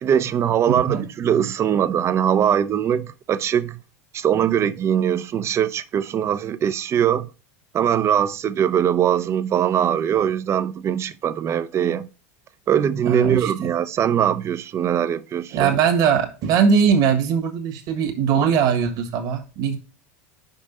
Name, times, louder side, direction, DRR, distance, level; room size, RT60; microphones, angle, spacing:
voice 1, 0.0-3.8 4.1-7.3 7.7-12.1 12.7-15.7, right 9 dB, 35° right, 0.6 m, -21 dB
voice 2, 13.0-13.7 15.5-19.8, right 7 dB, 50° right, 1.5 m, -20 dB
5.4 x 5.2 x 5.4 m
hypercardioid pair, 100°, 8 cm